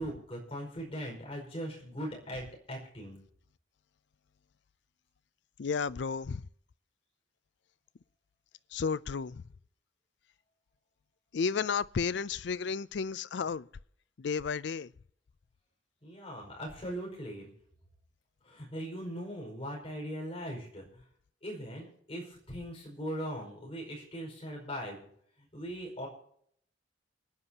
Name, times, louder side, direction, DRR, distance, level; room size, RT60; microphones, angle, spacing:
voice 1, 0.0-3.2 16.0-17.5 18.5-20.9 21.4-25.1 25.5-26.1, equal, 30° left, 5.2 m, -40 dB
voice 2, 5.6-6.4 8.7-9.4 11.3-13.7 14.2-14.9, left 5 dB, 65° left, 0.4 m, -32 dB
29.5 x 9.8 x 2.9 m
head